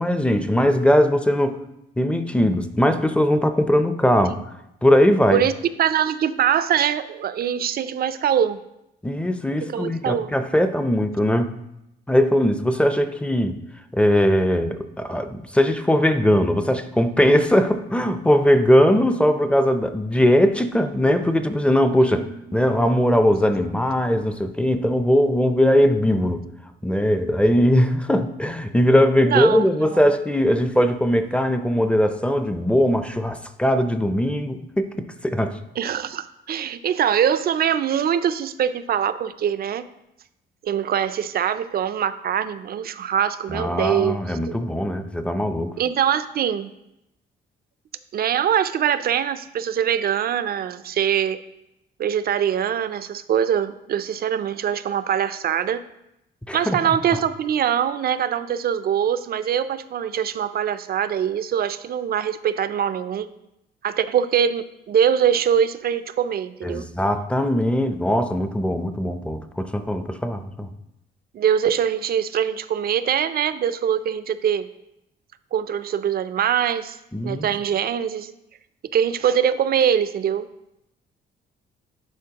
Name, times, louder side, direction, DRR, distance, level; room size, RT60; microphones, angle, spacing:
voice 1, 0.0-1.6 2.0-4.4 4.8-5.4 9.0-11.5 12.1-13.6 13.9-22.3 22.5-26.4 26.8-35.6 43.5-45.7 56.5-56.8 66.6-70.7 77.1-77.5, equal, 5° left, 9 dB, 0.5 m, -20 dB
voice 2, 5.8-8.6 9.7-10.3 22.0-22.2 29.2-30.0 35.8-39.8 40.6-44.6 45.8-46.7 48.1-51.4 52.0-55.8 56.5-63.3 63.8-66.9 71.3-74.7 75.5-77.0 77.2-78.3 78.9-80.5, right 9 dB, 50° right, 13 dB, 0.4 m, -23 dB
10.5 x 4.2 x 2.9 m, 0.86 s
cardioid pair, 90°, 20 cm